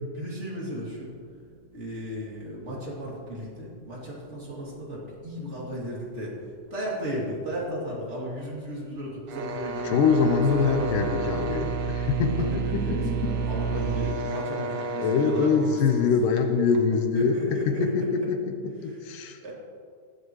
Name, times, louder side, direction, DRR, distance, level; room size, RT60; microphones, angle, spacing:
voice 1, 0.1-1.1 1.7-6.3 6.7-10.0 10.6-10.9 12.4-16.1 17.1-18.3 19.4-19.5, equal, 20° right, -5 dB, 2.7 m, -35 dB
sound 1, 9.3-17.0, right 2 dB, 65° right, 1.5 m, -35 dB
sound 2, 9.6-14.1, right 6 dB, 80° right, 2.2 m, -31 dB
voice 2, 9.8-13.5 15.0-19.5, left 5 dB, 85° left, 6 dB, 2.5 m, -24 dB
18.0 x 11.0 x 3.1 m, 2.3 s
omnidirectional pair, 3.7 m